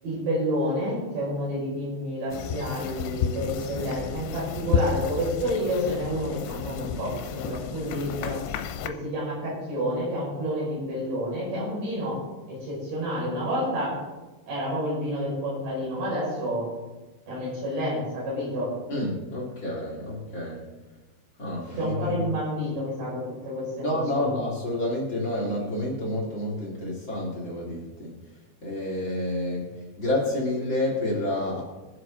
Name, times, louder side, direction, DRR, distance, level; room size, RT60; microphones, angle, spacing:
voice 1, 0.0-8.4 8.8-12.2 12.5-14.0 14.5-16.7 17.3-18.7 21.8-24.4, equal, 65° right, -6 dB, 7.9 m, -29 dB
sound 1, 2.3-8.9, left 7 dB, 85° left, 3.2 m, -31 dB
voice 2, 18.9-20.6 21.4-22.1 23.8-28.1 28.6-31.6, left 1 dB, 35° left, -4 dB, 2.4 m, -29 dB
23.5 x 7.9 x 3.8 m, 1.2 s
omnidirectional pair, 5.4 m